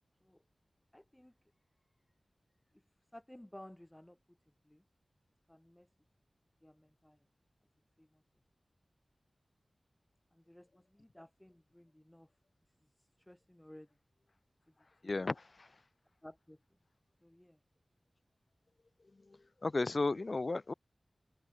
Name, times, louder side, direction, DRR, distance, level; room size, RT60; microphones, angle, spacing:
voice 1, 0.9-1.3 2.7-2.8 3.1-4.4 4.6-4.8 5.5-5.9 6.6-7.2 8.0-8.2 10.3-12.3 12.8-13.9 16.2-16.6 17.2-17.6 20.5-20.6, left 1 dB, 15° left, 1.5 m, -56 dB
voice 2, 15.0-15.7 19.3-20.7, left 3 dB, 55° left, 0.5 m, -35 dB
cardioid pair, 50°, 0 cm